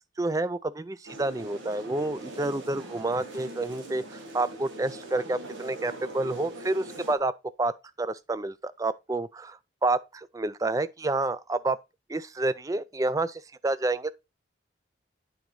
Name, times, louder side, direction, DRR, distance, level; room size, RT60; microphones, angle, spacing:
voice 1, 0.2-7.3 7.6-7.7 8.0-11.8 12.1-14.1, right 2 dB, 15° right, 0.3 m, -29 dB
sound 1, 1.1-7.2, right 1 dB, 80° right, 1.7 m, -42 dB
9.2 x 3.9 x 4.7 m
head